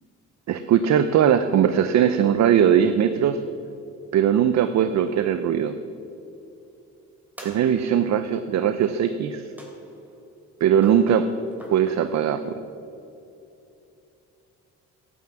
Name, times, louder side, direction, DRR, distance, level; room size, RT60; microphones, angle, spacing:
voice 1, 0.5-3.4 4.1-5.8 7.4-9.4 10.6-11.3 11.7-12.6, right 9 dB, 65° right, 10 dB, 0.7 m, -20 dB
sound 1, 7.4-8.2 9.6-10.2 10.8-12.0, equal, 5° right, 3.0 m, -43 dB
11.5 x 9.4 x 7.5 m, 2.7 s
cardioid pair, 90°, 30 cm